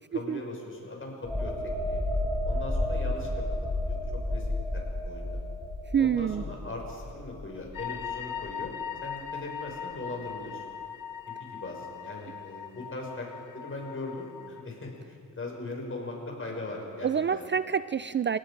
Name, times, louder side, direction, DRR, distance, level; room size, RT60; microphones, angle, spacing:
voice 1, 0.1-2.0 2.4-3.4 3.7-4.5 4.7-5.4 6.0-8.7 9.0-10.6 11.3-13.3 13.5-17.4, left 2 dB, 40° left, 0 dB, 6.3 m, -39 dB
sound 1, 1.2-8.7 9.0-9.2, left 1 dB, ahead, 5.2 m, -32 dB
voice 2, 5.9-6.4 17.0-18.4, right 7 dB, 35° right, 14 dB, 0.4 m, -27 dB
sound 2, 7.7-14.6, left 8 dB, 80° left, 1.2 m, -40 dB
29.0 x 18.0 x 5.3 m, 2.2 s
cardioid pair, 90°, 33 cm